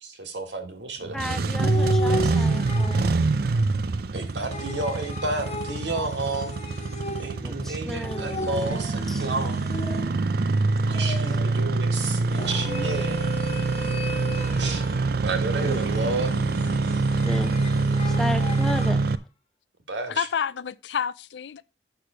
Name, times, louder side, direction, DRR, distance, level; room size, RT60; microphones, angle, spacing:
voice 1, 0.0-1.6 4.1-6.8 7.2-9.6 10.9-13.4 14.6-14.8 15.2-16.4 19.9-20.3, right 2 dB, 80° right, 1.8 m, -31 dB
Engine starting, 1.0-19.2, right 3 dB, 60° right, 0.5 m, -25 dB
voice 2, 1.1-3.2 7.4-8.5 9.1-9.2 17.2-17.6 18.2-19.0, left 1 dB, ahead, 0.8 m, -33 dB
sound 1, 1.6-3.3 4.5-7.6 8.0-10.4 10.9-11.6 12.3-15.1 15.5-19.0, left 1 dB, 35° left, 1.4 m, -35 dB
voice 3, 20.1-21.6, left 7 dB, 75° left, 0.4 m, -29 dB
6.8 x 6.1 x 4.9 m
head